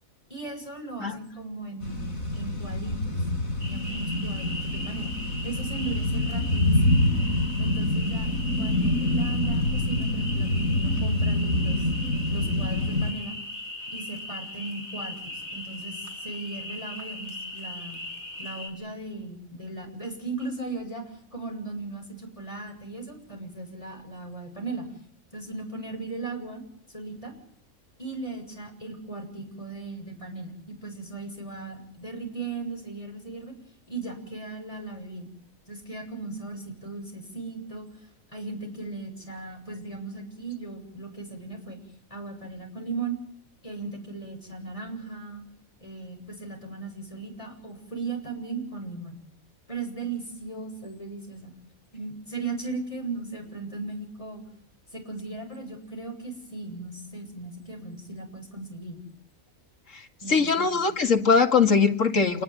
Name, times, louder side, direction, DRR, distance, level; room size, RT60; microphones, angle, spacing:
voice 1, 0.3-7.1 7.6-8.3 8.6-11.8 12.3-13.4 13.9-18.0 18.4-24.9 25.3-26.6 26.9-27.3 28.0-33.5 33.9-35.3 35.7-37.9 38.3-41.8 42.1-43.2 43.6-45.4 45.8-49.2 49.7-51.5 51.9-54.4 54.9-59.0 60.2-60.7, right 3 dB, 25° left, 3 dB, 7.6 m, -37 dB
sound 1, 1.8-13.1, left 1 dB, 85° left, 8.3 m, -26 dB
sound 2, 3.6-18.7, left 2 dB, 55° right, 7.7 m, -39 dB
voice 2, 60.3-62.4, left 5 dB, 70° left, 5 dB, 2.6 m, -21 dB
28.0 x 20.0 x 9.7 m, 0.67 s
omnidirectional pair, 1.4 m